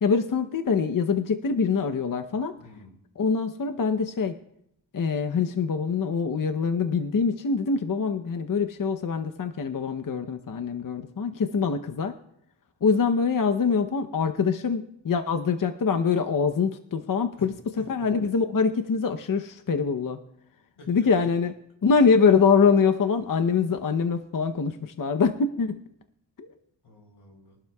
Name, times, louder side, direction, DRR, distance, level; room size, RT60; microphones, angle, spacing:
voice 1, 0.0-2.5 3.2-4.4 4.9-12.2 12.8-20.2 20.9-21.5 21.8-25.8 26.4-26.5, left 5 dB, 45° left, 8 dB, 0.8 m, -24 dB
voice 2, 2.6-3.0 17.4-18.1 20.8-21.1 26.8-27.6, left 2 dB, 90° left, 2 dB, 4.0 m, -49 dB
22.5 x 12.0 x 2.3 m, 0.74 s
cardioid pair, 75°, 46 cm